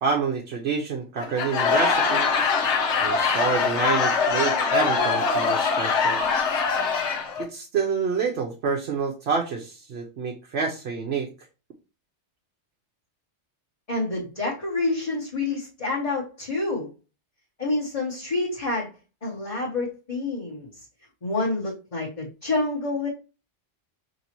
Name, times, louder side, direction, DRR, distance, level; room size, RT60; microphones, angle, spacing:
voice 1, 0.0-2.3 3.0-6.2 7.4-11.3, right 5 dB, 65° right, 0 dB, 1.0 m, -27 dB
Laughter / Crowd, 1.2-7.4, left 5 dB, 75° left, 1.1 m, -23 dB
voice 2, 13.9-16.9 17.6-18.9 19.2-20.7 21.2-23.1, left 2 dB, 35° left, -5 dB, 1.1 m, -28 dB
5.3 x 3.0 x 2.9 m, 0.31 s
omnidirectional pair, 1.2 m